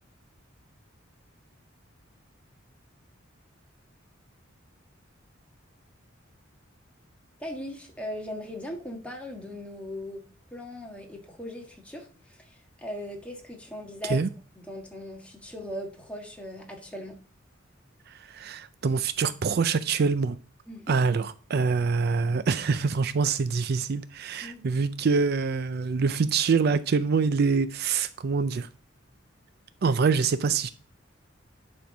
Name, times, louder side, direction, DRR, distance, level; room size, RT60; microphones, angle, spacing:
voice 1, 7.4-10.2 10.5-14.2 14.6-17.2 20.7-21.0 24.4-24.7, left 1 dB, 5° left, 1.6 m, -39 dB
voice 2, 18.1-20.4 20.9-28.7 29.8-30.7, right 5 dB, 50° right, 0.4 m, -25 dB
10.5 x 4.5 x 5.0 m
head